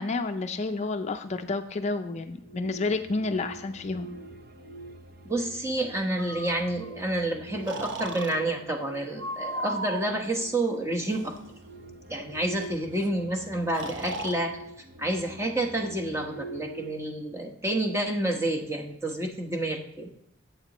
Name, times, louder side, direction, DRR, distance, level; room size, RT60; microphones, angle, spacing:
voice 1, 0.0-4.1, left 3 dB, 35° left, 8 dB, 0.4 m, -30 dB
sound 1, 2.2-16.9, right 2 dB, 55° right, 0.7 m, -46 dB
voice 2, 5.2-11.3 12.1-14.5 15.0-20.1, right 1 dB, 15° right, 1 dB, 1.1 m, -29 dB
Breathing, 6.2-7.0 7.7-8.3 9.2-10.1 11.0-11.4 12.6-12.7 12.9-13.1 13.7-14.4, right 1 dB, 80° right, 0.9 m, -36 dB
11.5 x 8.2 x 3.0 m, 0.78 s
head